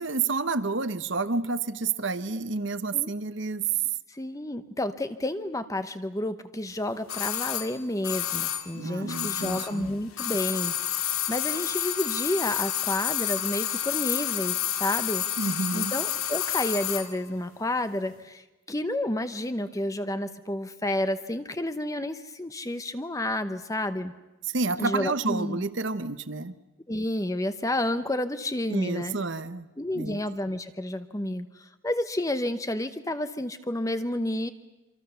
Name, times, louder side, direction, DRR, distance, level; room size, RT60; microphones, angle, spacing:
voice 1, 0.0-3.6 8.7-9.9 15.4-15.9 24.4-26.5 28.7-29.7 29.9-30.2, right 3 dB, 60° right, 13 dB, 1.0 m, -29 dB
voice 2, 4.1-15.2 15.7-24.1 24.8-25.6 26.9-29.1 29.8-34.5, left 1 dB, 15° left, 10 dB, 0.8 m, -30 dB
sound 1, 7.1-9.8 10.1-17.1 17.4-17.5, left 10 dB, 90° left, 2.3 m, -29 dB
27.0 x 25.5 x 6.9 m, 1.1 s
head